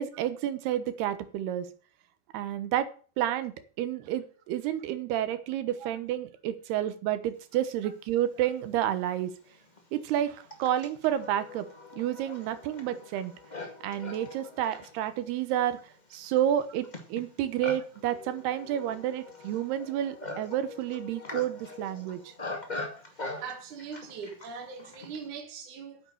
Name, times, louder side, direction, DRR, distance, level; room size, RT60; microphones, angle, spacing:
voice 1, 0.0-1.7 2.3-2.9 3.2-9.3 9.9-11.7 11.9-13.3 13.8-15.8 16.1-22.3, right 11 dB, 80° right, 3.1 m, -30 dB
Livestock farm animals working animals, 8.5-8.6 9.3-25.3, left 2 dB, 35° left, 0.6 m, -43 dB
voice 2, 23.0-26.0, right 6 dB, 55° right, 3.4 m, -41 dB
10.0 x 8.1 x 6.5 m
omnidirectional pair, 4.6 m